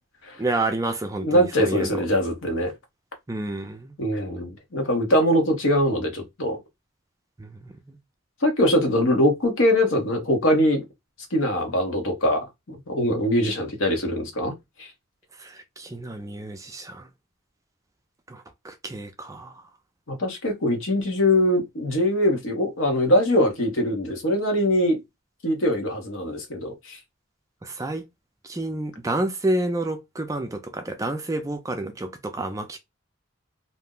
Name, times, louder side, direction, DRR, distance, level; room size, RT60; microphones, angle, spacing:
voice 1, 0.4-2.0 3.3-3.9 7.4-8.0 15.4-17.1 18.3-19.5 27.6-28.0 28.4-32.8, right 2 dB, 15° right, 0.3 m, -29 dB
voice 2, 1.2-2.7 4.0-6.6 8.4-10.8 11.3-14.9 20.1-25.0 25.4-27.0, left 1 dB, 80° left, 0.9 m, -22 dB
2.6 x 2.0 x 3.6 m
head